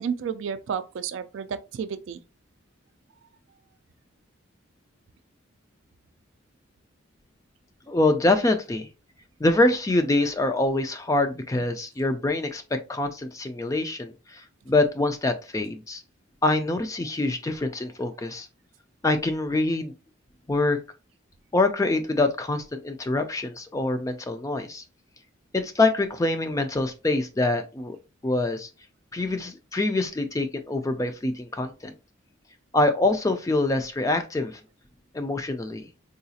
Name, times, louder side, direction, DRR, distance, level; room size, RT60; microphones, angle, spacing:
voice 1, 0.0-2.2, right 7 dB, 70° right, 0.3 m, -31 dB
voice 2, 7.9-8.9 9.4-12.6 12.9-16.0 16.4-18.5 19.0-19.9 20.5-20.8 21.5-24.8 25.5-28.0 28.2-28.7 29.1-31.9 32.7-34.6 35.1-35.9, left 2 dB, 15° left, 0.3 m, -25 dB
3.8 x 2.4 x 2.7 m
head